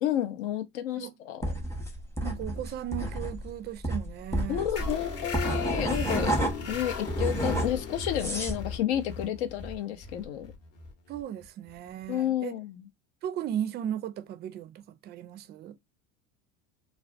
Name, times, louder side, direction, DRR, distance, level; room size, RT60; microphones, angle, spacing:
voice 1, 0.0-1.5 4.5-6.4 6.7-10.5 12.1-12.9, left 11 dB, 70° left, 0.6 m, -31 dB
sound 1, 1.4-6.7 7.1-8.6, right 1 dB, 10° left, 0.7 m, -30 dB
voice 2, 2.2-5.0 11.1-12.5 13.2-15.8, right 10 dB, 30° right, 0.4 m, -36 dB
sound 2, 4.8-11.9, left 4 dB, 45° left, 0.9 m, -38 dB
2.4 x 2.1 x 2.4 m
hypercardioid pair, 80°, 34 cm